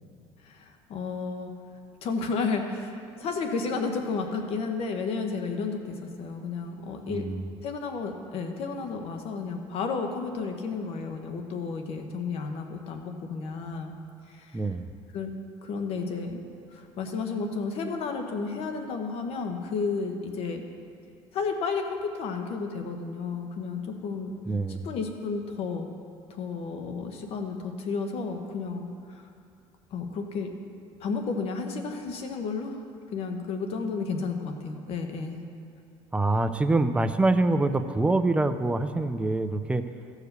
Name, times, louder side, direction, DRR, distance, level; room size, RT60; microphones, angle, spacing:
voice 1, 0.4-1.5 2.0-7.3 7.6-13.9 14.3-14.6 15.1-15.3 15.6-16.4 16.7-20.6 21.3-24.3 24.7-25.9 26.3-29.2 29.9-30.5 31.0-32.8 33.1-35.4, left 4 dB, 60° left, 5 dB, 1.1 m, -32 dB
voice 2, 7.1-7.5 14.5-14.9 24.5-24.9 36.1-39.8, right 2 dB, 10° right, 9 dB, 0.5 m, -25 dB
14.5 x 4.9 x 6.7 m, 2.4 s
cardioid pair, 125°, 11 cm